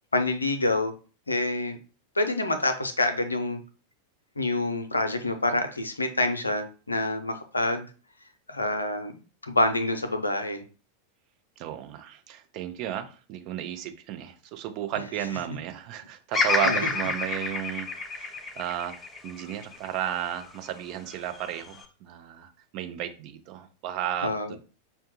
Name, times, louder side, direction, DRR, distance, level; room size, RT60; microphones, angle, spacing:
voice 1, 0.1-0.9 1.3-1.8 2.2-3.6 4.4-7.9 8.5-10.6 16.6-16.8 24.2-24.6, left 2 dB, 80° left, 0.5 m, -27 dB
voice 2, 11.6-24.6, right 10 dB, 40° right, 0.5 m, -34 dB
Bird vocalization bird call bird song, 16.3-20.6 21.1-21.9, left 4 dB, 20° left, 0.5 m, -29 dB
5.5 x 2.2 x 2.9 m
figure-of-eight pair, 90°, 0 cm